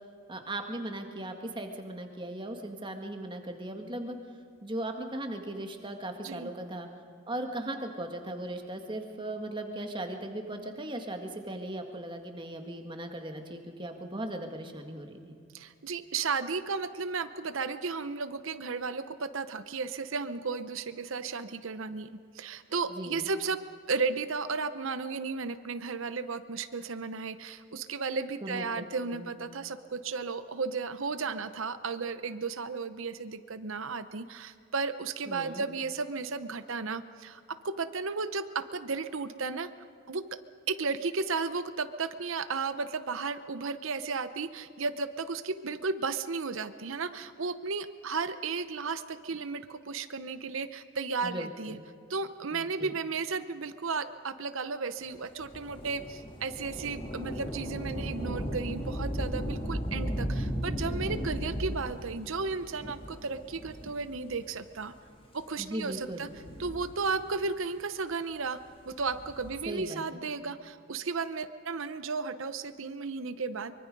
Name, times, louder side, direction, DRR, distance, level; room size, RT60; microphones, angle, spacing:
voice 1, 0.3-4.2 4.6-6.9 7.3-15.3 22.9-23.3 28.4-28.8 29.1-29.3 35.3-35.7 51.2-51.8 52.5-52.9 65.6-66.3 69.7-70.2, right 1 dB, 20° right, 4 dB, 1.8 m, -38 dB
voice 2, 15.5-23.6 23.9-39.7 40.1-40.4 40.7-51.8 52.1-64.9 65.3-66.3 66.6-68.6 68.9-73.7, right 4 dB, 65° right, 12 dB, 0.8 m, -34 dB
Thunder / Rain, 55.4-64.4 65.1-65.2 66.1-67.4 68.9-69.7, equal, 25° left, 2.3 m, -36 dB
24.0 x 23.5 x 5.3 m, 2.4 s
head